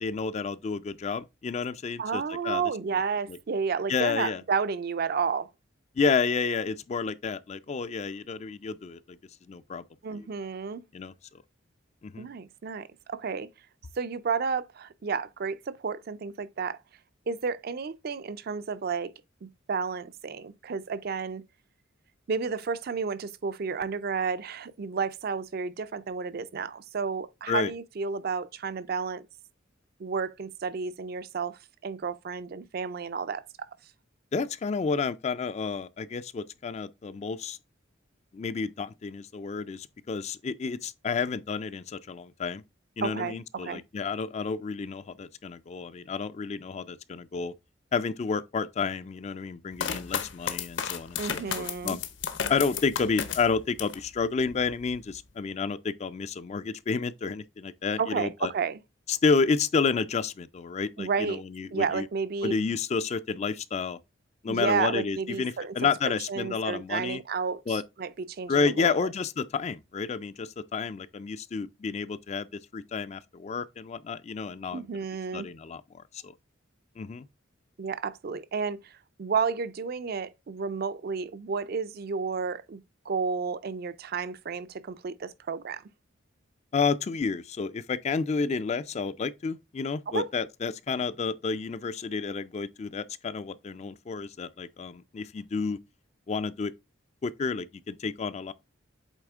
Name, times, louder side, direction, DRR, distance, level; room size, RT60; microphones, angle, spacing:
voice 1, 0.0-2.6 3.9-4.4 6.0-9.2 9.5-9.8 10.1-10.3 10.9-11.1 12.0-12.3 27.5-27.7 34.3-37.6 38.3-42.6 43.0-47.5 47.9-52.0 52.5-58.5 59.1-62.1 62.4-64.0 64.4-67.2 67.7-67.8 68.5-72.5 72.7-74.8 75.3-76.3 77.0-77.3 86.7-95.8 96.3-96.7 97.2-98.5, left 5 dB, 35° left, 0.3 m, -30 dB
voice 2, 2.0-5.5 10.0-10.8 12.2-13.5 14.0-16.8 17.3-19.1 19.4-21.4 22.3-29.3 30.0-33.7 43.0-43.8 51.2-52.0 58.0-58.8 61.0-61.4 61.7-62.6 64.5-65.8 66.3-69.1 74.7-75.5 77.8-85.8 90.1-90.3, right 5 dB, 50° right, 0.4 m, -31 dB
sound 1, 49.8-54.1 54.5-55.2, left 7 dB, 65° left, 0.8 m, -33 dB
8.2 x 3.5 x 3.5 m
head